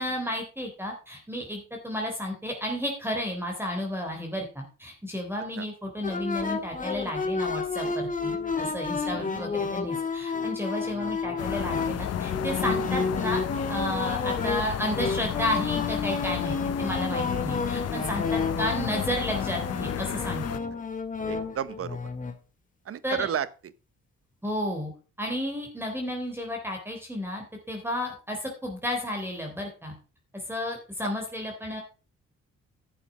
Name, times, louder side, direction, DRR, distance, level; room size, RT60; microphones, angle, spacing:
voice 1, 0.0-20.4 23.0-23.3 24.4-24.9 25.2-29.9 30.5-31.8, left 1 dB, 5° right, 3.5 m, -32 dB
sound 1, 6.0-22.4, left 4 dB, 25° left, 1.9 m, -31 dB
sound 2, 11.4-20.6, left 11 dB, 55° left, 0.8 m, -32 dB
voice 2, 21.3-22.0 22.8-23.5, right 9 dB, 50° right, 1.0 m, -32 dB
11.5 x 7.8 x 4.9 m
cardioid pair, 90°, 30 cm